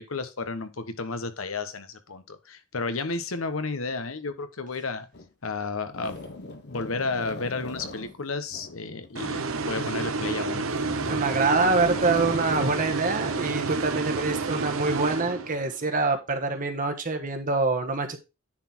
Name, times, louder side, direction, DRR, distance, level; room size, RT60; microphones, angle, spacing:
voice 1, 0.0-5.1 5.4-10.6, left 3 dB, 80° left, 10 dB, 1.1 m, -32 dB
sound 1, 5.1-5.3 5.9-9.1 9.8-10.3 10.6-13.7, left 2 dB, 55° left, 1.3 m, -41 dB
sound 2, 9.2-15.8, right 3 dB, 85° right, 0.9 m, -29 dB
voice 2, 11.1-18.2, right 3 dB, 40° right, 6 dB, 1.3 m, -25 dB
10.0 x 4.1 x 4.4 m, 0.27 s
head